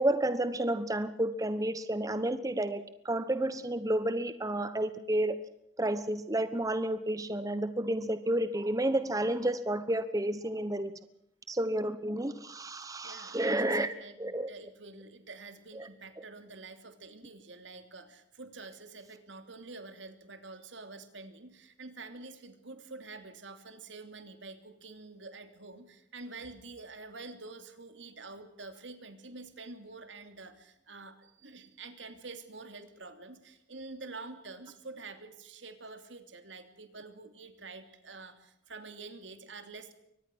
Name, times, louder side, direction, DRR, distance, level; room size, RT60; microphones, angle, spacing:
voice 1, 0.0-5.4 5.8-10.9 11.5-13.9 14.2-14.5 15.7-15.9, right 1 dB, 20° right, 11 dB, 1.1 m, -31 dB
voice 2, 13.0-39.9, right 3 dB, 75° right, 8 dB, 3.0 m, -47 dB
24.0 x 19.0 x 6.3 m, 0.80 s
head